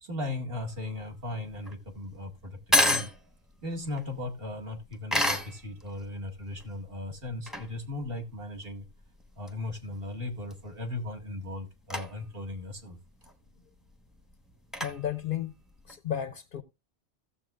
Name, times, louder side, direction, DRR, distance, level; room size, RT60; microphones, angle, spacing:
voice 1, 0.0-3.1 3.6-8.9 9.4-13.0, left 2 dB, 55° right, 2.0 m, -37 dB
sound 1, 0.5-16.0, left 1 dB, ahead, 0.9 m, -33 dB
voice 2, 14.8-15.5 15.9-16.6, left 10 dB, 55° left, 0.7 m, -33 dB
16.5 x 7.2 x 2.4 m
omnidirectional pair, 1.2 m